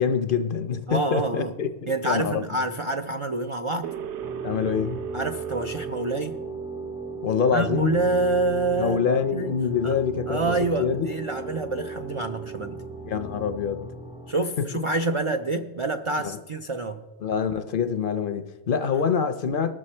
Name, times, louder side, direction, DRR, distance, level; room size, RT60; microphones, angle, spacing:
voice 1, 0.0-2.4 4.4-5.0 7.2-8.0 8.8-11.1 13.1-13.9 16.2-16.4 17.2-19.7, left 7 dB, 60° left, 0.7 m, -25 dB
voice 2, 0.9-1.5 1.9-3.9 5.1-6.4 7.5-9.6 9.8-10.0 10.3-12.8 14.3-17.0 18.9-19.0, right 2 dB, 55° right, 0.3 m, -27 dB
sound 1, 3.8-14.7, right 6 dB, 75° right, 0.9 m, -36 dB
sound 2, 4.2-14.3, equal, 5° right, 0.6 m, -43 dB
19.0 x 6.5 x 4.3 m
omnidirectional pair, 1.2 m